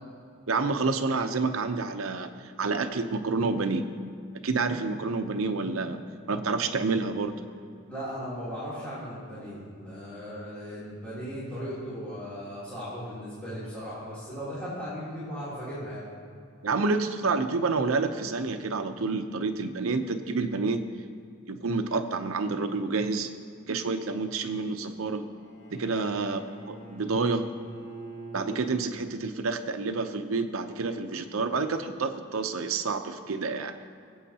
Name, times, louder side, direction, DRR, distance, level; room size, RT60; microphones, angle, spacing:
voice 1, 0.5-2.3 2.6-3.8 4.4-6.0 6.3-7.4 16.6-20.8 21.5-23.3 23.7-25.3 25.7-27.5 28.3-33.7, right 4 dB, 85° right, 7 dB, 0.7 m, -28 dB
voice 2, 7.9-16.0 25.9-26.1, equal, 5° left, -13 dB, 3.2 m, -37 dB
Bowed string instrument, 25.3-29.4, right 2 dB, 80° left, 2.0 m, -45 dB
20.5 x 8.4 x 2.9 m, 2.4 s
head